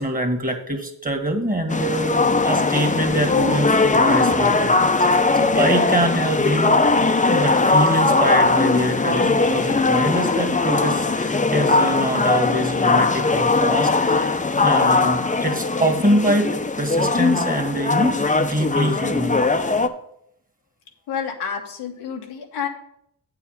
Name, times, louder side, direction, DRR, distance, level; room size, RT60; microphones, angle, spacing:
voice 1, 0.0-4.7 5.0-6.8 7.2-19.4, right 1 dB, 20° right, 4 dB, 1.9 m, -24 dB
sound 1, 1.7-19.9, left 3 dB, 20° left, 0.7 m, -19 dB
voice 2, 21.1-22.7, left 7 dB, 90° left, 2 dB, 1.2 m, -29 dB
8.2 x 4.9 x 6.5 m, 0.75 s
supercardioid pair, 50°, 39 cm